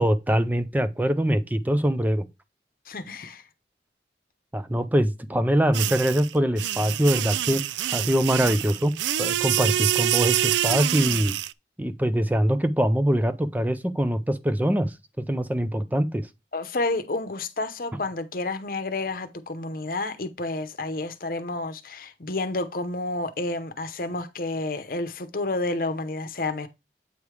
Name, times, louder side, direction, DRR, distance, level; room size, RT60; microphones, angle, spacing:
voice 1, 0.0-2.2 4.5-7.6 7.9-8.9 9.2-11.3 11.8-14.9 15.3-16.2, equal, 10° right, 0.5 m, -23 dB
voice 2, 2.9-3.4 16.5-26.7, left 2 dB, 50° left, 0.8 m, -30 dB
sound 1, 5.7-11.5, right 13 dB, 90° right, 0.3 m, -26 dB
8.3 x 3.3 x 4.8 m
head